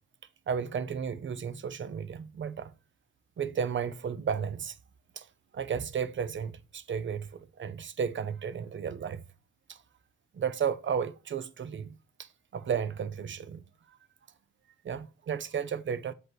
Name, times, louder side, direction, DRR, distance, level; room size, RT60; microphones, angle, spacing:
voice 1, 0.5-2.7 3.4-4.8 5.2-5.3 5.5-9.2 9.7-9.8 10.3-13.6 14.8-16.1, right 7 dB, 40° right, 0.8 m, -33 dB
7.8 x 3.1 x 6.1 m
cardioid pair, 90°, 30 cm